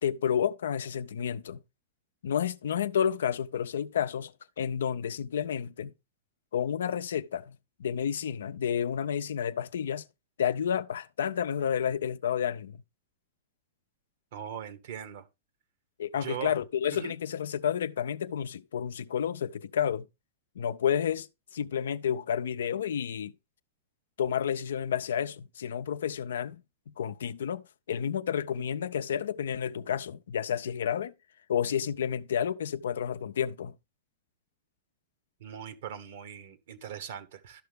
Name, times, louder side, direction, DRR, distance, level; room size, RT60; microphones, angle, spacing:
voice 1, 0.0-1.6 2.2-5.9 6.5-10.0 10.4-12.8 16.0-20.1 20.6-21.3 21.5-23.3 24.2-26.6 26.9-31.1 31.5-33.8, left 8 dB, 80° left, 0.5 m, -30 dB
voice 2, 14.3-15.3 16.2-16.5 16.9-17.1 35.4-37.6, right 9 dB, 65° right, 1.2 m, -40 dB
12.5 x 5.6 x 3.4 m
hypercardioid pair, 120°, 0 cm